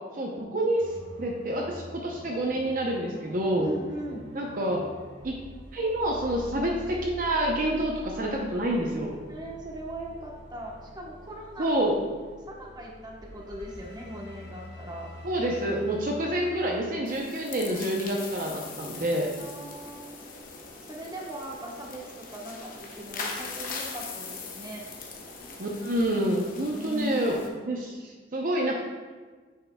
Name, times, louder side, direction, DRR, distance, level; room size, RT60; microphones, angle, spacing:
voice 1, 0.1-3.7 4.3-4.8 5.2-5.4 5.7-9.2 11.6-12.0 15.2-19.3 25.6-28.7, right 1 dB, 50° right, -1 dB, 0.7 m, -28 dB
sound 1, 0.8-16.8, left 1 dB, 80° right, 1.6 m, -45 dB
voice 2, 3.6-4.3 9.3-11.9 12.5-15.1 19.3-20.2 20.8-24.9 26.7-27.2, right 1 dB, 25° right, -2 dB, 1.0 m, -39 dB
sound 2, 17.1-27.5, left 4 dB, 50° left, 0.9 m, -41 dB
9.0 x 6.5 x 2.3 m, 1.4 s
head